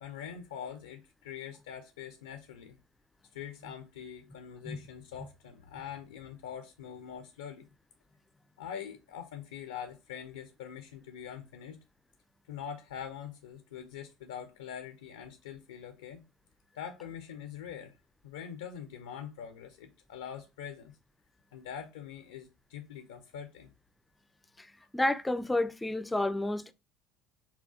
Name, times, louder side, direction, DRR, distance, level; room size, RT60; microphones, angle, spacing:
voice 1, 0.0-2.8 3.3-7.7 8.6-11.8 12.5-16.2 16.7-18.0 18.2-20.9 21.5-23.7, left 8 dB, 70° left, 0.4 m, -44 dB
voice 2, 24.9-26.7, left 1 dB, 10° left, 0.4 m, -30 dB
5.5 x 2.3 x 2.5 m
figure-of-eight pair, 65°, 0 cm